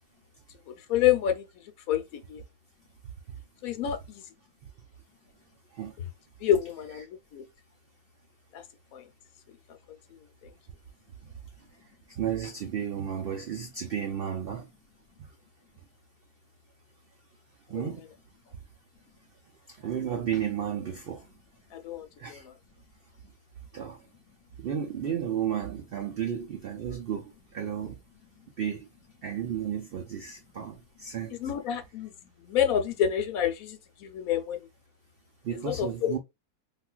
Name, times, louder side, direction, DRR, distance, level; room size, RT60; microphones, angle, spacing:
voice 1, 0.9-1.4 1.9-2.4 3.6-4.2 6.4-7.1 7.3-7.4 8.5-8.6 8.9-9.0 17.7-17.9 21.7-22.5 31.4-32.1 32.4-34.7 35.6-36.2, left 9 dB, 75° left, 1.0 m, -28 dB
voice 2, 12.2-14.6 17.7-18.0 19.8-21.2 22.2-22.4 23.7-24.0 24.6-27.2 27.5-28.0 28.6-28.9 29.2-31.4 35.4-36.2, right 9 dB, 75° right, 0.5 m, -32 dB
3.7 x 2.4 x 2.2 m
omnidirectional pair, 1.6 m